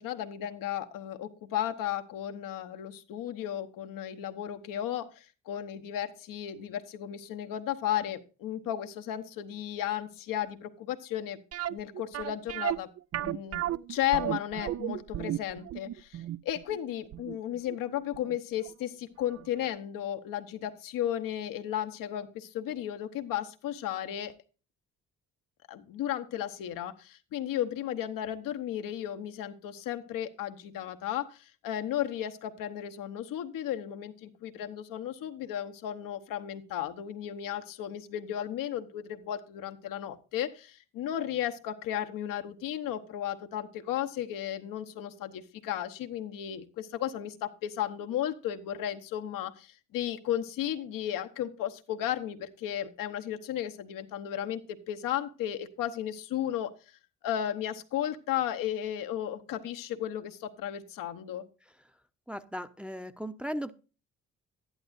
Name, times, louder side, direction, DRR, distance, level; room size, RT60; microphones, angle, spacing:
voice 1, 0.0-11.4 11.7-12.9 13.2-24.3 25.7-56.7 57.2-61.5, left 11 dB, 70° left, 8 dB, 1.0 m, -34 dB
sound 1, 11.5-18.4 18.7-18.8 19.3-19.5 19.7-19.8, right 13 dB, 45° right, 0.5 m, -34 dB
voice 2, 62.3-63.7, equal, 5° right, 8 dB, 0.9 m, -37 dB
11.5 x 11.0 x 2.5 m, 0.33 s
hypercardioid pair, 50°, 34 cm